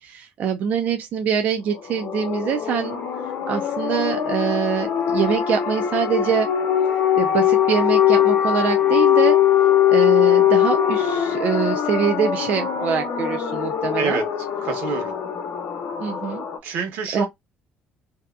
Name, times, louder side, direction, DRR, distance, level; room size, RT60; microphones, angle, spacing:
voice 1, 0.0-3.0 3.5-6.5 7.2-9.4 9.9-14.2 16.0-16.8 17.1-17.2, right 7 dB, 50° right, 0.4 m, -24 dB
sound 1, 1.8-16.6, left 10 dB, 65° left, 0.7 m, -21 dB
voice 2, 14.6-15.1 16.6-17.3, right 5 dB, 85° right, 1.1 m, -26 dB
2.7 x 2.1 x 2.3 m
cardioid pair, 145°, 3 cm